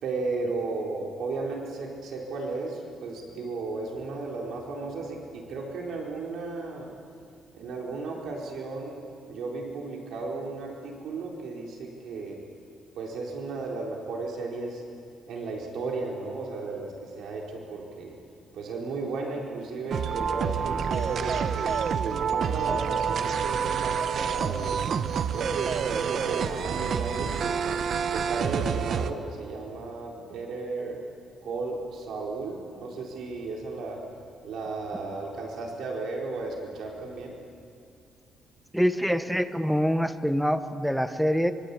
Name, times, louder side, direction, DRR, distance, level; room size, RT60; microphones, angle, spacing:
voice 1, 0.0-6.9 7.5-12.4 12.9-14.8 15.3-18.1 18.5-21.6 22.0-24.8 25.3-27.7 28.1-31.0 31.4-34.0 34.4-37.4, right 3 dB, 65° right, -1 dB, 4.4 m, -34 dB
sound 1, 19.9-29.1, right 7 dB, 50° right, 1.0 m, -28 dB
voice 2, 38.7-41.5, equal, ahead, 10 dB, 1.0 m, -25 dB
24.5 x 24.5 x 8.6 m, 2.3 s
cardioid pair, 155°, 0 cm